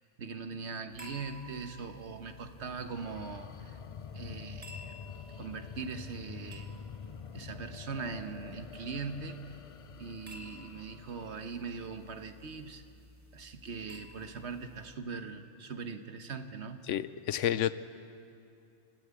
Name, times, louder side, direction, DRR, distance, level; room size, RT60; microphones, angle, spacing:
voice 1, 0.0-3.8 4.1-5.0 5.4-6.7 7.3-9.6 10.0-12.8 13.3-16.8, right 5 dB, 70° right, 8 dB, 1.4 m, -41 dB
sound 1, 0.9-15.0, left 1 dB, 15° right, 1.9 m, -54 dB
sound 2, 2.6-12.3, left 7 dB, 50° left, 0.4 m, -47 dB
voice 2, 16.9-17.7, left 11 dB, 90° left, 14 dB, 1.0 m, -30 dB
28.0 x 12.0 x 8.4 m, 2.6 s
omnidirectional pair, 1.2 m